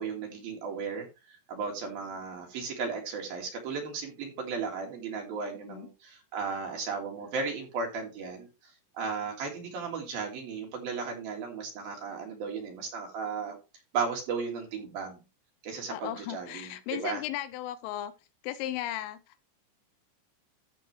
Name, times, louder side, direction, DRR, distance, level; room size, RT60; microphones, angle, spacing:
voice 1, 0.0-13.6 13.9-15.2 15.6-17.2, right 5 dB, 55° right, 3.2 m, -35 dB
voice 2, 15.9-18.1 18.4-19.4, left 13 dB, 80° left, 3.1 m, -36 dB
13.5 x 6.4 x 3.2 m
omnidirectional pair, 5.8 m